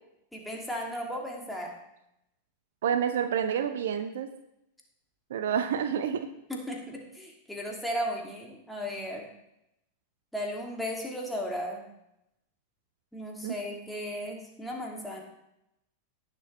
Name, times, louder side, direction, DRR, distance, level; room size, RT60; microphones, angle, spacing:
voice 1, 0.3-1.7 6.5-9.3 10.3-11.8 13.1-15.2, equal, ahead, -1 dB, 2.6 m, -35 dB
voice 2, 2.8-4.3 5.3-6.3 13.4-13.5, right 8 dB, 60° right, 9 dB, 0.7 m, -28 dB
18.0 x 7.5 x 3.3 m, 0.82 s
figure-of-eight pair, 90°, 0 cm